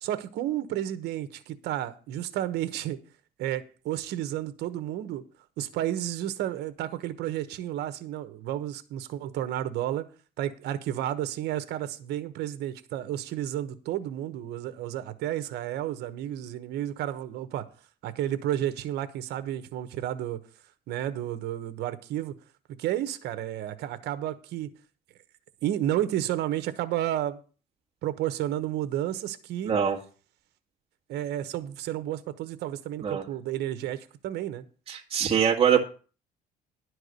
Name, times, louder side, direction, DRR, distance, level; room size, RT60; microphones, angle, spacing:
voice 1, 0.0-3.0 3.4-5.2 5.6-10.1 10.4-17.7 18.0-20.4 20.9-22.3 22.8-24.7 25.6-27.4 28.0-29.7 31.1-34.6, right 12 dB, 80° right, 1.1 m, -31 dB
voice 2, 29.6-30.0 33.0-33.2 34.9-35.8, right 8 dB, 35° right, 1.7 m, -23 dB
11.0 x 4.7 x 8.1 m
cardioid pair, 110°, 17 cm